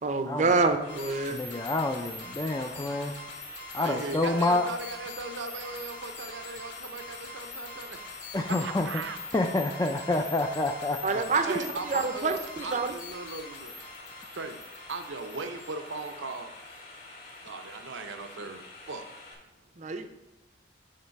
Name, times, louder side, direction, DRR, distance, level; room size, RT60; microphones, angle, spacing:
voice 1, 0.0-1.4 11.0-12.9 19.8-20.1, right 3 dB, 40° right, 8 dB, 0.5 m, -27 dB
sound 1, 0.8-19.3, left 2 dB, 50° left, 2.0 m, -48 dB
sound 2, 0.9-16.7, left 3 dB, 65° left, 2.0 m, -44 dB
voice 2, 1.3-3.2 3.7-4.7 8.3-8.9 9.3-11.2, left 2 dB, 15° left, 3 dB, 0.3 m, -28 dB
voice 3, 3.7-8.0 8.6-9.2 11.4-13.7 14.4-14.6 14.9-16.5 17.4-18.6 18.9-19.0, right 3 dB, 80° right, 7 dB, 0.7 m, -38 dB
6.6 x 4.0 x 5.7 m, 1.1 s
head